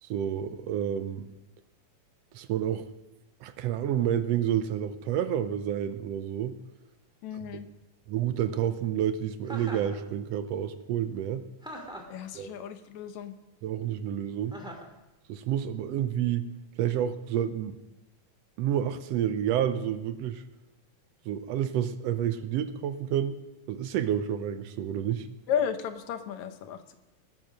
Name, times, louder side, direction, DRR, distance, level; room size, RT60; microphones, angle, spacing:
voice 1, 0.0-1.3 2.3-2.9 3.4-6.6 7.5-7.6 8.1-11.4 12.3-12.5 13.6-14.6 15.3-16.5 16.8-17.7 18.6-20.4 21.2-23.4 23.7-25.3, right 10 dB, 75° right, 12 dB, 1.6 m, -29 dB
voice 2, 7.2-7.7 12.1-13.3 25.5-27.0, left 8 dB, 75° left, 9 dB, 2.2 m, -33 dB
Chuckle chortle, 9.5-10.0 11.6-12.2 14.5-14.9, equal, ahead, 1.4 m, -41 dB
18.0 x 8.8 x 6.5 m, 0.98 s
omnidirectional pair, 3.4 m